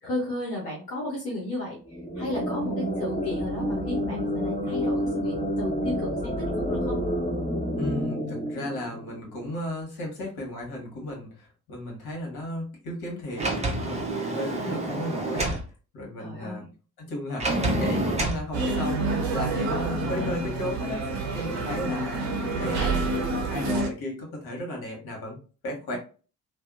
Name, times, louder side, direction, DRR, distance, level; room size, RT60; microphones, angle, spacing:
voice 1, 0.0-7.0 7.5-7.9 14.6-15.0 16.2-16.7 21.6-22.0, left 2 dB, 85° left, -5 dB, 0.7 m, -34 dB
sound 1, 1.9-9.5, equal, 15° left, 1.1 m, -29 dB
voice 2, 7.8-15.6 15.9-16.6 17.0-22.2 22.5-25.4 25.6-26.0, left 1 dB, 55° left, -1 dB, 1.2 m, -35 dB
Sliding door, 13.4-15.6 17.4-18.4, right 2 dB, 15° right, 0.7 m, -27 dB
sound 2, 18.5-23.9, right 2 dB, 55° right, 0.8 m, -28 dB
2.7 x 2.2 x 2.4 m, 0.37 s
figure-of-eight pair, 45°, 45 cm